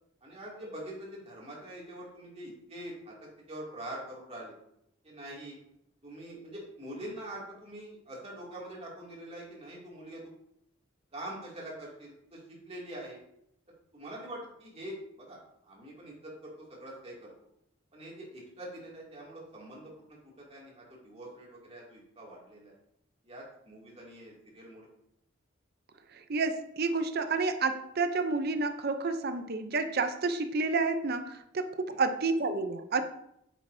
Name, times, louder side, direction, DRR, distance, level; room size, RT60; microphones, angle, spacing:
voice 1, 0.2-3.2 3.5-4.5 5.0-5.6 6.0-10.2 11.1-12.4 12.7-13.2 13.9-17.3 17.9-22.7 23.2-24.9 31.9-32.0, right 1 dB, 30° right, -3 dB, 2.5 m, -44 dB
voice 2, 26.1-33.0, right 3 dB, 50° right, 9 dB, 0.6 m, -30 dB
8.8 x 7.4 x 2.7 m, 0.76 s
head